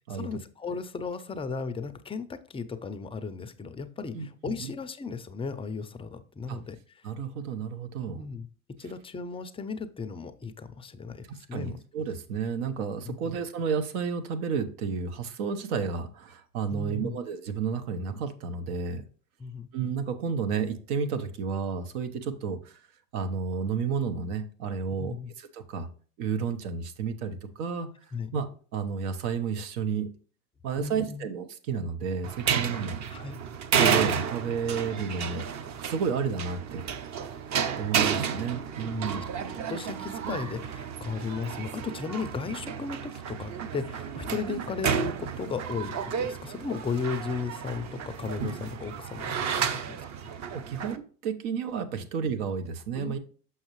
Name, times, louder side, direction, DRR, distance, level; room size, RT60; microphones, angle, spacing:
voice 1, 0.1-7.1 8.1-8.5 8.8-11.8 13.1-13.2 16.7-17.2 19.4-19.7 25.0-25.3 28.1-28.3 30.8-31.3 32.8-33.4 38.9-39.4 39.7-50.0 52.9-53.2, left 5 dB, 15° left, 10 dB, 0.4 m, -35 dB
voice 2, 4.1-4.7 6.5-6.6 7.0-8.2 11.3-19.0 19.7-22.7 23.1-25.9 26.2-27.9 28.3-28.5 28.7-30.1 30.6-33.0 33.7-35.5 35.8-36.9 37.8-39.2 50.0-50.1 50.5-53.2, right 6 dB, 75° right, 9 dB, 1.1 m, -31 dB
sound 1, 32.2-51.0, right 7 dB, 40° right, 0.7 m, -31 dB
6.4 x 5.6 x 3.1 m, 0.40 s
hypercardioid pair, 95°, 45 cm